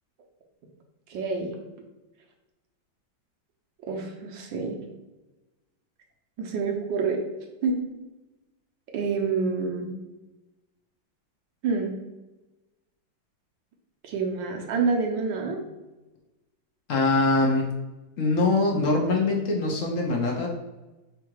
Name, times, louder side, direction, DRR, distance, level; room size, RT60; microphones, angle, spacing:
voice 1, 1.1-1.6 3.9-4.8 6.4-7.2 7.6-7.8 8.9-9.9 11.6-11.9 14.0-15.6, right 4 dB, 75° right, 2 dB, 1.4 m, -27 dB
voice 2, 16.9-17.7 18.2-20.5, left 3 dB, 65° left, 0 dB, 0.8 m, -23 dB
3.7 x 2.4 x 4.5 m, 1.1 s
omnidirectional pair, 2.1 m